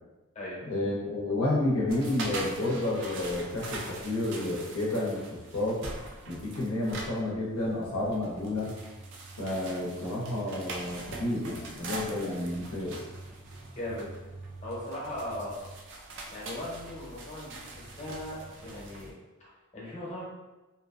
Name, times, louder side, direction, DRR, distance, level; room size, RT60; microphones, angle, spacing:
voice 1, 0.6-5.8 6.3-8.7 9.4-13.0, left 1 dB, 80° left, -4 dB, 0.7 m, -30 dB
sound 1, 1.9-19.1, right 2 dB, 55° right, 0.4 m, -42 dB
voice 2, 13.7-14.1 14.6-15.5 16.3-19.1 19.4-20.3, left 1 dB, 30° left, -6 dB, 0.8 m, -38 dB
2.7 x 2.5 x 2.4 m, 1.1 s
head